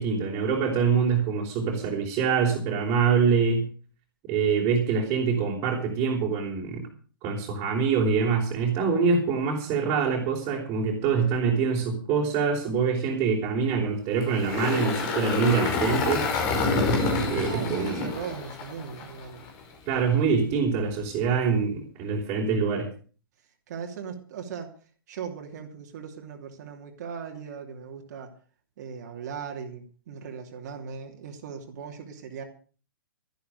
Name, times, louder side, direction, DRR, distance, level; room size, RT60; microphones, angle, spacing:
voice 1, 0.0-3.7 4.3-6.9 7.2-16.3 17.3-18.1 19.9-22.9, right 5 dB, 30° right, -2 dB, 4.2 m, -25 dB
Engine, 14.2-19.5, left 3 dB, 40° left, 5.1 m, -27 dB
voice 2, 17.0-19.5 23.7-24.8 25.1-28.3 28.8-32.4, right 6 dB, 50° right, 2 dB, 3.0 m, -38 dB
13.5 x 12.0 x 6.5 m, 0.40 s
figure-of-eight pair, 120°, 12 cm